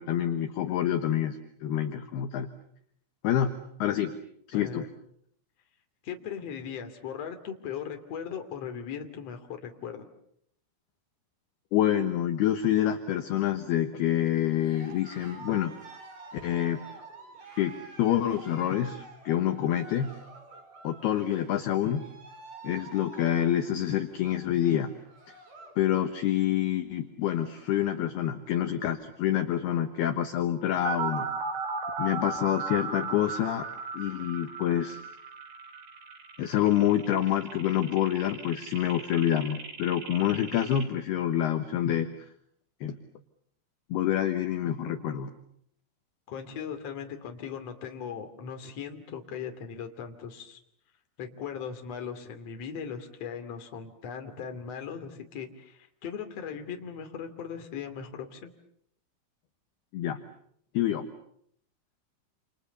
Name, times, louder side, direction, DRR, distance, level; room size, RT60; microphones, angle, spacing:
voice 1, 0.0-2.5 3.2-3.5 3.8-4.2 4.5-4.9 11.7-15.7 16.4-16.9 17.6-20.1 20.8-22.0 22.6-24.9 25.8-31.3 32.0-33.7 33.9-35.0 36.4-42.1 42.8-43.0 43.9-45.3 59.9-60.2 60.7-61.1, left 11 dB, 70° left, 7 dB, 2.7 m, -27 dB
voice 2, 4.5-4.9 6.0-10.1 46.3-50.6 51.2-58.5, left 7 dB, 40° left, 5 dB, 2.9 m, -38 dB
Cheering, 14.5-25.8 26.1-26.5 27.0-27.1 27.2-28.1, right 3 dB, 35° right, 5.0 m, -49 dB
sound 1, 30.9-40.8, right 4 dB, 50° right, 5.4 m, -36 dB
29.5 x 29.0 x 6.8 m, 0.70 s
omnidirectional pair, 6.0 m